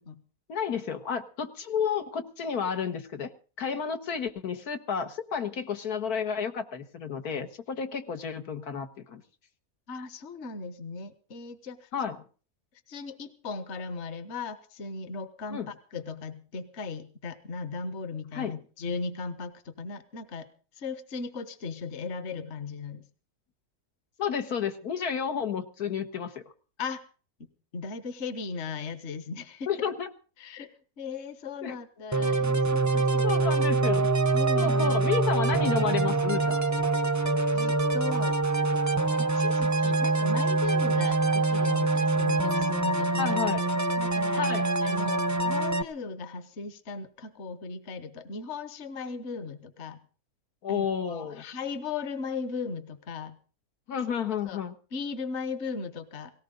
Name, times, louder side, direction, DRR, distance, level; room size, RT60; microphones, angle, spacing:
voice 1, 0.5-3.3 3.6-9.2 11.9-12.2 15.5-15.7 18.3-18.6 24.2-26.4 29.7-30.1 31.6-31.8 33.2-34.1 34.5-36.6 43.2-43.6 44.4-44.7 50.6-51.4 53.9-54.7, left 7 dB, 85° left, 7 dB, 1.9 m, -31 dB
voice 2, 9.9-11.9 12.9-20.5 20.7-23.0 26.8-27.0 27.7-29.7 30.4-33.5 34.3-35.1 37.5-38.4 39.2-43.4 44.0-44.5 44.8-50.0 50.7-53.4 54.4-54.6 54.9-56.3, left 4 dB, 50° left, 12 dB, 1.4 m, -37 dB
sound 1, 32.1-45.8, right 3 dB, 20° right, 0.5 m, -25 dB
18.0 x 18.0 x 3.9 m, 0.38 s
omnidirectional pair, 1.6 m